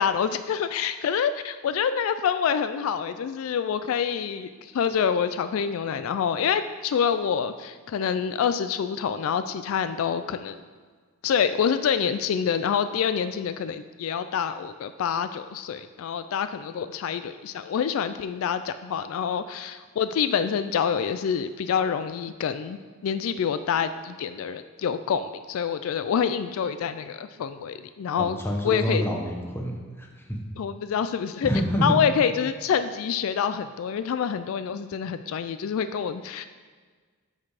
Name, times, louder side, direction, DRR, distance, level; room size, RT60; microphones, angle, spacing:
voice 1, 0.0-10.6 11.2-28.4 28.6-29.0 30.6-31.5 31.8-36.4, left 7 dB, 75° left, 11 dB, 0.3 m, -27 dB
voice 2, 28.2-30.4 31.4-32.0, equal, 10° left, 0 dB, 0.9 m, -27 dB
6.6 x 5.9 x 4.8 m, 1.5 s
head